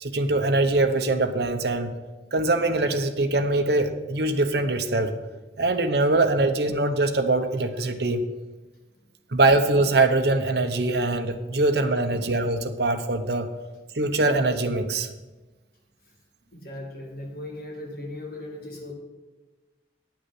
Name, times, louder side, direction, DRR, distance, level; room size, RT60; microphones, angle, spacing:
voice 1, 0.0-1.9 2.3-5.1 5.6-8.2 9.3-13.5 13.9-15.1, right 2 dB, 65° right, 6 dB, 0.9 m, -23 dB
voice 2, 16.5-18.9, left 1 dB, 55° left, 0 dB, 2.2 m, -37 dB
9.7 x 6.0 x 7.7 m, 1.2 s
head